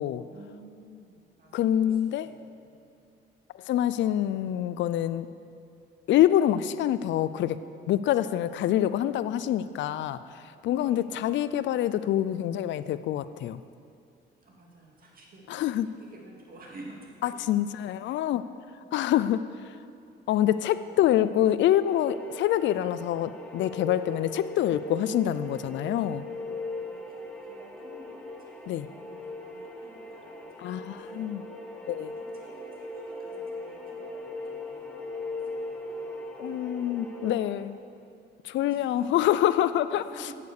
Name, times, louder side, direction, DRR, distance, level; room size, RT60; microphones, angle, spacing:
voice 1, 0.3-2.8 10.7-11.3 14.4-17.5 18.9-19.1 20.4-21.0 26.8-31.3 32.0-36.8 38.6-39.2 40.0-40.3, right 2 dB, 45° right, -1 dB, 2.3 m, -52 dB
voice 2, 1.5-2.3 3.7-5.3 6.1-7.6 7.9-13.6 15.5-15.9 17.2-18.4 18.9-19.5 20.3-26.2 28.7-28.9 30.6-31.4 31.9-32.1 36.4-37.8 38.4-40.2, left 12 dB, 70° left, 14 dB, 0.4 m, -26 dB
sound 1, 21.8-37.5, left 1 dB, 5° left, 1.4 m, -39 dB
9.2 x 6.7 x 7.0 m, 2.5 s
cardioid pair, 90°, 20 cm